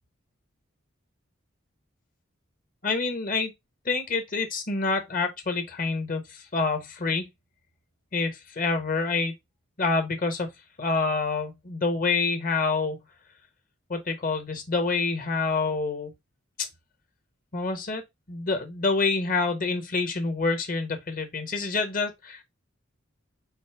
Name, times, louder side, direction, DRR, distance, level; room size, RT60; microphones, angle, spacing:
voice 1, 2.8-3.5 3.8-7.3 8.1-9.3 9.8-10.5 10.8-13.0 13.9-16.1 17.5-18.0 18.3-22.4, left 3 dB, 40° left, 1.0 m, -27 dB
4.1 x 2.5 x 4.6 m
head